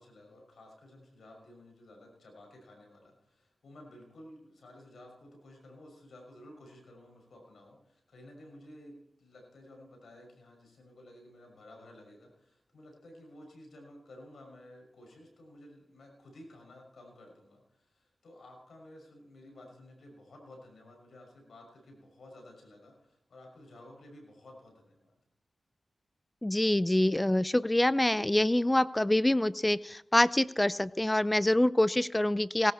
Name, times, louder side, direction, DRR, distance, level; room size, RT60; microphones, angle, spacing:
voice 1, 0.0-25.1, left 1 dB, 85° left, 2 dB, 6.2 m, -53 dB
voice 2, 26.4-32.7, left 1 dB, 15° left, 17 dB, 0.6 m, -26 dB
18.5 x 13.5 x 4.4 m, 0.77 s
cardioid pair, 55°, 0 cm